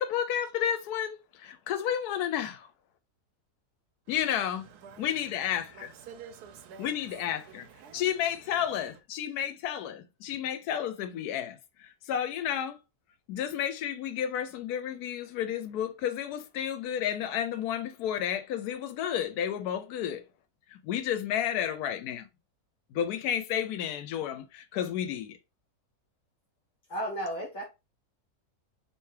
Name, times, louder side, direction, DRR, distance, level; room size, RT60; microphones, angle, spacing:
voice 1, 0.0-2.7 4.1-4.7 5.0-5.9 6.8-7.6 7.9-12.8 13.3-20.2 20.7-22.3 22.9-25.4, left 9 dB, 85° left, 1.1 m, -31 dB
voice 2, 4.1-9.0, right 7 dB, 90° right, 1.2 m, -50 dB
voice 3, 26.9-27.6, right 1 dB, 35° left, 1.2 m, -33 dB
3.3 x 2.9 x 3.2 m
omnidirectional pair, 1.6 m